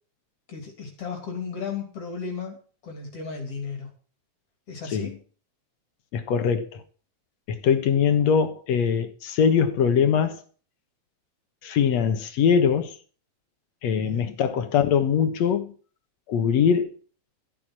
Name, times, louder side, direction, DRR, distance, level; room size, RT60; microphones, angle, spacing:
voice 1, 0.5-2.6 2.8-3.9 4.7-5.2 14.0-14.4, left 5 dB, 55° left, 4.0 m, -35 dB
voice 2, 6.1-6.8 7.5-10.4 11.6-13.0 13.8-15.7 16.3-16.9, left 7 dB, 70° left, 2.5 m, -22 dB
13.5 x 8.6 x 6.3 m
omnidirectional pair, 3.3 m